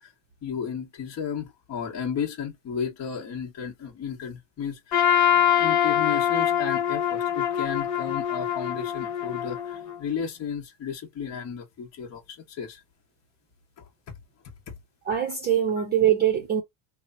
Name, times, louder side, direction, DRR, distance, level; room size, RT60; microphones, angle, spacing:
voice 1, 0.4-4.8 5.6-12.8 14.1-14.2 14.7-14.8 15.8-15.9, left 7 dB, 35° left, 1.1 m, -33 dB
Trumpet, 4.9-10.0, left 9 dB, 50° left, 1.4 m, -24 dB
voice 2, 15.1-16.6, right 10 dB, 20° right, 0.7 m, -23 dB
2.9 x 2.2 x 2.5 m
supercardioid pair, 135°, 47 cm